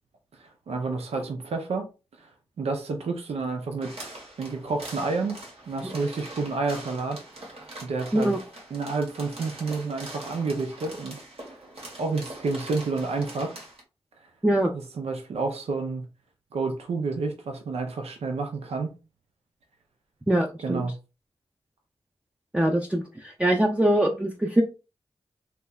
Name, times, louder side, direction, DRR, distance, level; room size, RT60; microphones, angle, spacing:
voice 1, 0.7-1.9 2.2-2.3 2.6-5.4 5.7-7.2 7.8-8.3 8.7-11.2 12.0-13.6 14.7-16.1 16.5-18.9 20.6-20.9, right 3 dB, 90° right, 0.5 m, -29 dB
sound 1, 3.8-13.8, right 1 dB, 70° right, 1.3 m, -43 dB
voice 2, 20.3-20.8 22.5-24.6, right 1 dB, 10° right, 0.5 m, -23 dB
3.3 x 3.0 x 2.3 m
cardioid pair, 45°, 10 cm